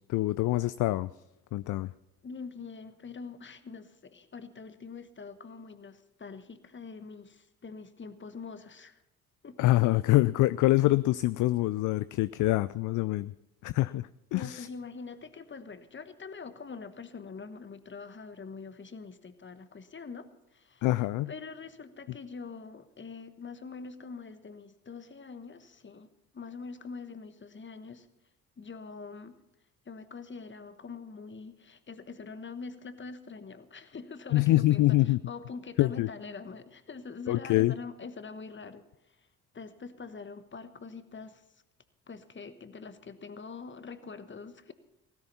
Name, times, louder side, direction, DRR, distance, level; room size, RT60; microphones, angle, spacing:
voice 1, 0.1-1.1 1.5-1.9 9.6-13.3 13.6-14.7 20.8-21.3 34.3-35.2 35.8-36.1 37.3-37.7, left 17 dB, 45° left, 17 dB, 0.4 m, -25 dB
voice 2, 2.2-9.0 9.4-9.7 14.3-20.9 21.3-26.1 26.3-28.1 28.6-29.4 29.8-38.8 39.5-41.4 42.1-44.7, left 4 dB, 25° left, 12 dB, 1.3 m, -44 dB
16.5 x 15.5 x 4.2 m, 0.84 s
hypercardioid pair, 55°, 45 cm